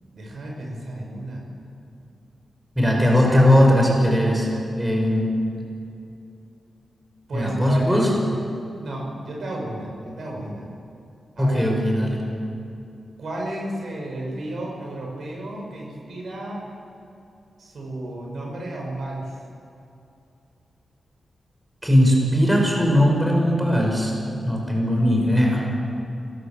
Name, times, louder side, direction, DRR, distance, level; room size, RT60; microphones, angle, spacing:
voice 1, 0.1-1.4 3.3-3.5 7.3-8.4 8.8-10.7 11.4-11.7 13.2-16.7 17.6-19.4, right 1 dB, 70° right, -1 dB, 6.4 m, -33 dB
voice 2, 2.8-4.5 4.7-5.3 7.3-8.1 11.4-12.2 21.8-24.1 24.4-25.7, equal, 5° right, -1 dB, 5.4 m, -19 dB
27.0 x 18.5 x 7.7 m, 2.6 s
wide cardioid pair, 120°, 0 cm